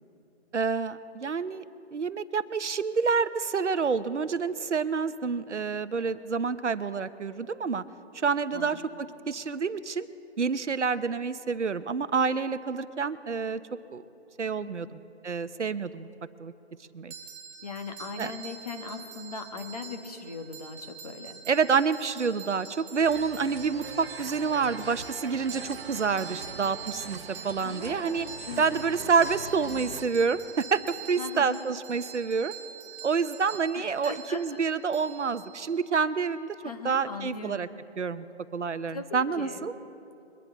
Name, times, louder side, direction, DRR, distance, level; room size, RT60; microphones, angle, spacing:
voice 1, 0.5-1.6 1.9-7.8 8.1-8.8 9.3-10.1 10.4-13.6 13.9-14.0 14.4-16.1 16.4-16.5 16.9-17.1 18.2-18.3 21.5-28.3 28.6-32.5 33.0-36.6 36.8-37.7 38.0-38.2 38.5-39.7, right 5 dB, 90° right, 13 dB, 0.9 m, -28 dB
voice 2, 8.5-8.8 14.6-14.9 17.6-21.4 27.6-28.8 31.2-31.6 33.5-34.6 36.6-37.7 38.9-39.7, left 4 dB, 35° left, 6 dB, 1.4 m, -39 dB
sound 1, 17.1-35.9, right 7 dB, 25° right, 2.3 m, -45 dB
sound 2, 23.0-30.1, right 5 dB, 60° right, 1.0 m, -42 dB
23.0 x 10.5 x 4.0 m, 2.7 s
figure-of-eight pair, 165°, 34 cm